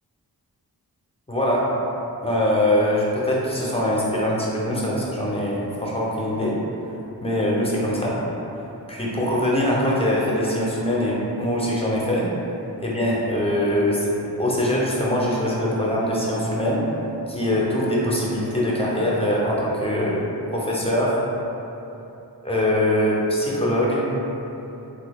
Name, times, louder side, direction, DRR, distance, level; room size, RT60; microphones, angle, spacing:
voice 1, 1.3-1.7 2.2-6.6 7.2-8.2 8.9-12.3 12.8-16.8 17.3-20.2 20.5-21.2 22.4-24.0, left 1 dB, 15° left, -5 dB, 0.7 m, -22 dB
3.4 x 3.1 x 2.3 m, 3.0 s
cardioid pair, 45°, 40 cm